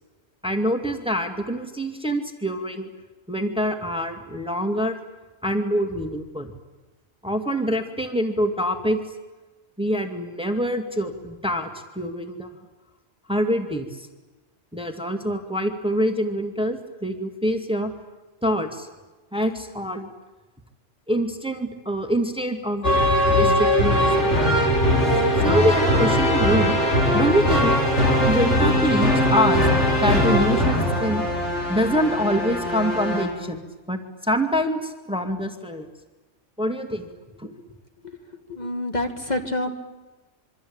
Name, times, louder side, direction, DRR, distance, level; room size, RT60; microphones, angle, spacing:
voice 1, 0.4-2.9 3.3-5.0 5.4-6.5 7.2-9.0 9.8-11.7 12.0-12.5 13.3-14.1 14.7-17.9 18.4-18.9 19.3-20.1 21.1-22.9 23.3-24.3 25.4-26.8 27.1-27.8 28.2-29.7 30.0-31.3 31.7-33.6 33.9-35.9 36.6-37.1 37.4-37.5, equal, 5° right, 5 dB, 2.2 m, -25 dB
sound 1, 22.8-33.4, equal, 70° left, 5.5 m, -20 dB
voice 2, 38.5-39.7, left 1 dB, 35° left, 5 dB, 2.4 m, -27 dB
26.5 x 24.0 x 8.8 m, 1.2 s
omnidirectional pair, 1.2 m